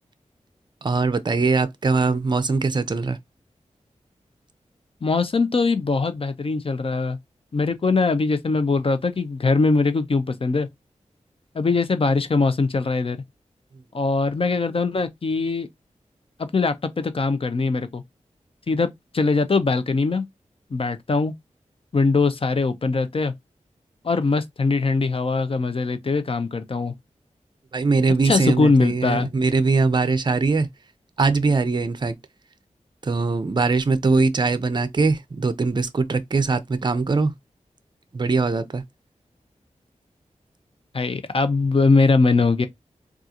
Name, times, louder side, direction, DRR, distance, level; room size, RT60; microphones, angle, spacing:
voice 1, 0.8-3.2 27.7-30.7 31.2-32.1 33.0-37.3 38.1-38.8, right 4 dB, 35° right, 0.5 m, -21 dB
voice 2, 5.0-7.2 7.5-10.7 11.5-13.2 13.9-15.7 16.4-18.0 18.7-18.9 19.1-20.3 20.7-21.3 21.9-23.3 24.0-26.9 28.2-29.3 40.9-42.7, left 3 dB, 50° left, 0.5 m, -21 dB
3.7 x 2.4 x 2.8 m
wide cardioid pair, 65°, 12 cm